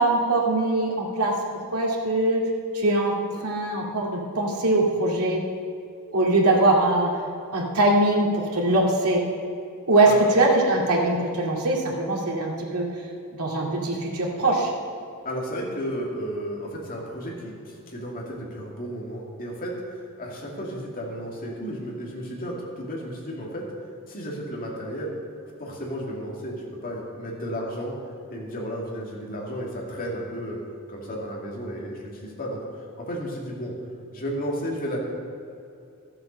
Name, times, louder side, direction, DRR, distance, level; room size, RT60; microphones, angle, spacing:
voice 1, 0.0-2.4 2.7-5.4 6.1-7.2 7.5-9.3 9.9-12.9 13.3-14.7, right 2 dB, 90° right, -2 dB, 2.3 m, -22 dB
voice 2, 15.2-25.1 25.6-28.0 28.3-30.6 30.9-33.7 34.1-35.0, equal, 40° left, -3 dB, 2.5 m, -33 dB
13.0 x 7.8 x 6.6 m, 2.6 s
head